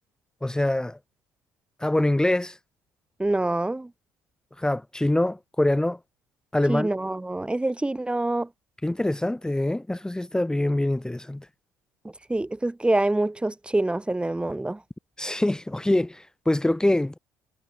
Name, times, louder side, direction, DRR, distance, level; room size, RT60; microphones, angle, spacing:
voice 1, 0.4-1.0 1.8-2.6 4.6-6.0 6.5-6.9 8.8-11.5 15.2-17.1, left 1 dB, 10° left, 1.3 m, -24 dB
voice 2, 3.2-3.9 6.7-8.5 12.3-14.8, right 2 dB, 15° right, 1.5 m, -25 dB
hypercardioid pair, 55°, 8 cm